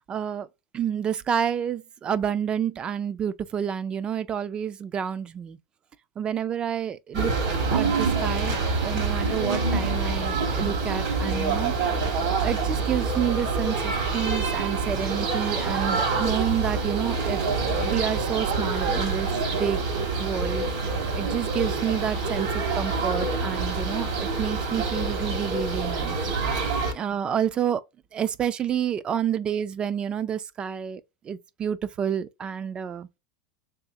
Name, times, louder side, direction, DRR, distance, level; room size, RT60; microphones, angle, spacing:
voice 1, 0.1-0.5 0.7-5.6 6.2-7.3 7.7-11.7 12.4-19.3 19.5-19.8 20.2-20.7 21.2-26.2 26.9-27.8 28.1-33.1, right 8 dB, 25° right, 0.4 m, -29 dB
sound 1, 7.1-26.9, right 4 dB, 70° right, 2.1 m, -26 dB
3.5 x 3.2 x 2.9 m
supercardioid pair, 120°, 4 cm